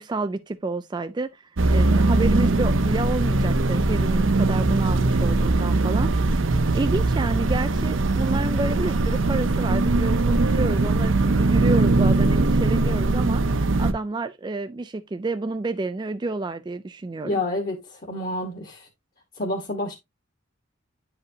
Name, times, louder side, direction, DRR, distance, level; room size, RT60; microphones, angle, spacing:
voice 1, 0.0-17.4, right 3 dB, 20° right, 0.3 m, -30 dB
sound 1, 1.6-13.9, right 2 dB, 70° right, 0.7 m, -21 dB
voice 2, 17.2-18.9 19.4-19.9, left 2 dB, 45° left, 1.2 m, -29 dB
9.5 x 4.9 x 2.6 m
head